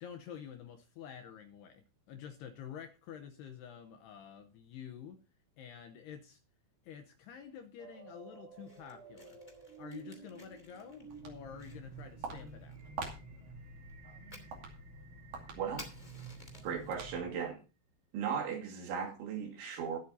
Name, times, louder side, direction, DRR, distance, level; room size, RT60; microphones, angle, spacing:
voice 1, 0.0-5.2 5.6-6.4 6.8-9.4 9.8-12.8, left 8 dB, 75° left, 2.5 m, -49 dB
sound 1, 7.8-16.7, right 5 dB, 90° right, 8.5 m, -55 dB
Fire, 8.5-16.9, left 2 dB, 20° left, 1.2 m, -57 dB
Walk footsteps, 10.9-17.5, right 3 dB, 50° right, 3.7 m, -47 dB
voice 2, 15.6-15.9 16.6-17.6 18.1-20.0, right 7 dB, 70° right, 4.6 m, -37 dB
22.0 x 8.1 x 2.7 m
omnidirectional pair, 5.6 m